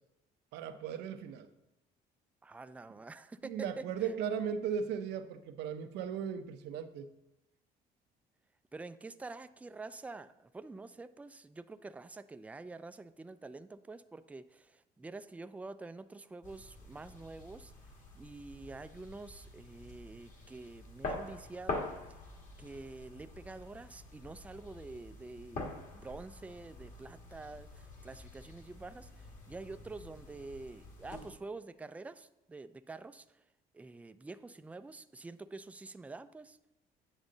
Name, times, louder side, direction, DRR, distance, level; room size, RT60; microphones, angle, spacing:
voice 1, 0.5-1.5 3.4-7.1, right 7 dB, 85° right, 9 dB, 0.7 m, -37 dB
voice 2, 2.4-4.1 8.7-17.7 18.2-21.9 22.6-33.4 33.7-36.8, right 3 dB, 10° right, 11 dB, 0.3 m, -47 dB
sound 1, 16.4-31.3, left 2 dB, 50° left, 1.8 m, -46 dB
8.9 x 6.4 x 3.9 m, 0.89 s
cardioid pair, 110°, 17 cm